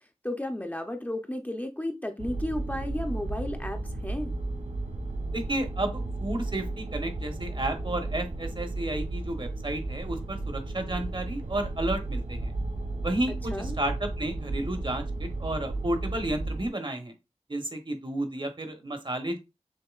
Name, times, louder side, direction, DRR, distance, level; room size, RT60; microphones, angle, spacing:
voice 1, 0.2-4.3 13.5-13.8, left 1 dB, 15° left, 0.6 m, -33 dB
sound 1, 2.2-16.7, right 2 dB, 80° right, 0.8 m, -34 dB
voice 2, 5.3-12.5 13.0-17.1 17.5-19.4, right 1 dB, 45° right, 1.0 m, -32 dB
6.5 x 2.7 x 2.3 m
wide cardioid pair, 70°, 12 cm